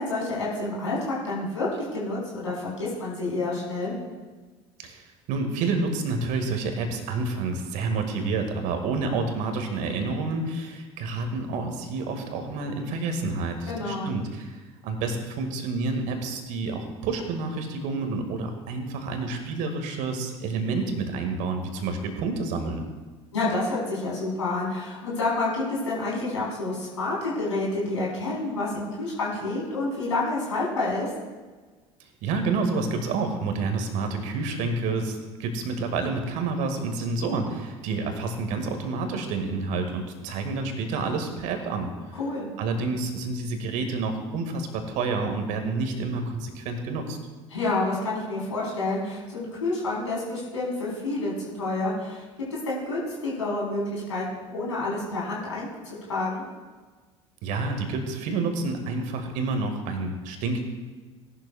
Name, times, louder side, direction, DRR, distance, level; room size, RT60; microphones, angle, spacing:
voice 1, 0.0-1.7 1.9-3.9 13.7-14.1 23.3-31.1 42.1-42.5 47.5-52.2 52.7-56.4, left 2 dB, 80° left, -5 dB, 3.9 m, -29 dB
voice 2, 4.8-22.8 32.2-41.9 42.6-47.2 57.4-60.6, right 3 dB, 55° right, 5 dB, 1.9 m, -29 dB
17.5 x 11.5 x 2.4 m, 1.4 s
figure-of-eight pair, 60°, 15 cm